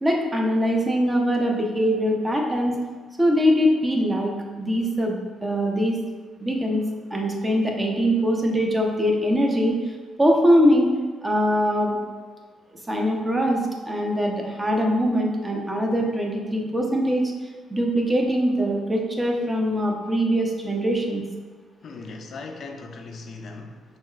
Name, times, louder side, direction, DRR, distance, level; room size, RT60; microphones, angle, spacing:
voice 1, 0.0-2.7 3.2-4.3 4.6-6.0 6.4-6.8 7.1-9.8 10.2-10.9 11.2-12.0 12.9-17.2 17.7-21.2, equal, 20° right, 1 dB, 0.7 m, -22 dB
voice 2, 21.8-23.8, left 3 dB, 55° left, 4 dB, 0.4 m, -38 dB
5.9 x 2.4 x 2.4 m, 1.5 s
cardioid pair, 90°, 0 cm